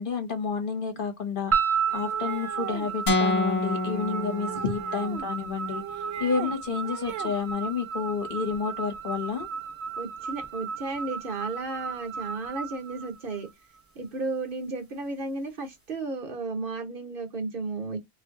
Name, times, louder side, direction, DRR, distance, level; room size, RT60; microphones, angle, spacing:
voice 1, 0.0-1.5 1.9-5.8 6.2-9.5, left 6 dB, 55° left, 1.0 m, -30 dB
sound 1, 1.5-13.8, right 6 dB, 15° right, 0.8 m, -33 dB
sound 2, 1.9-3.0 3.9-5.3 5.6-6.5 6.8-7.4, right 9 dB, 85° right, 0.9 m, -38 dB
sound 3, 3.1-5.2, left 2 dB, 40° left, 0.6 m, -27 dB
voice 2, 10.0-13.5 13.9-18.0, right 3 dB, 60° right, 1.0 m, -33 dB
2.6 x 2.5 x 3.6 m
omnidirectional pair, 1.1 m